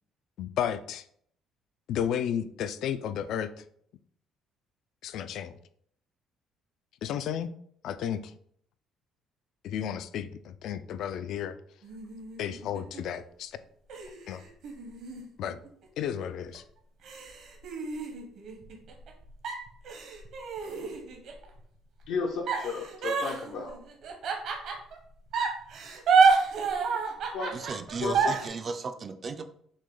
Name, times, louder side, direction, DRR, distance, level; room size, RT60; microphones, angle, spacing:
voice 1, 0.4-1.0 1.9-3.6 5.0-5.6 7.0-7.5 7.8-8.3 9.6-11.6 12.4-13.6 14.3-14.4 15.4-15.6 16.0-16.6, left 9 dB, 65° left, 13 dB, 0.3 m, -33 dB
sound 1, 11.8-13.2 13.9-16.1 16.5-16.6 17.0-19.1 19.4-21.4 22.5-25.0 25.3-28.5, right 5 dB, 60° right, 0.9 m, -29 dB
voice 2, 22.1-23.7 27.3-27.7 28.0-28.3, left 4 dB, 85° left, -2 dB, 0.8 m, -34 dB
voice 3, 27.5-29.5, right 4 dB, 35° right, 8 dB, 0.4 m, -35 dB
6.1 x 2.2 x 3.8 m, 0.66 s
cardioid pair, 135°, 0 cm